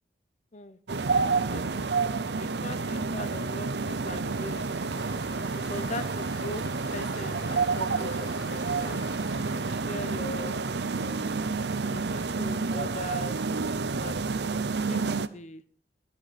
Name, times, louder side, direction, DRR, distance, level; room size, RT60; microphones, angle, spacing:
sound 1, 0.9-15.3, right 4 dB, 70° right, 0.7 m, -29 dB
voice 1, 1.5-2.1 2.4-4.9 5.7-6.6 6.9-9.0 9.6-11.3 11.8-13.4 14.0-15.6, left 2 dB, 40° left, 12 dB, 0.8 m, -41 dB
Engine, 4.3-9.7, left 3 dB, 65° left, 1.7 m, -47 dB
15.0 x 12.0 x 4.2 m, 0.43 s
head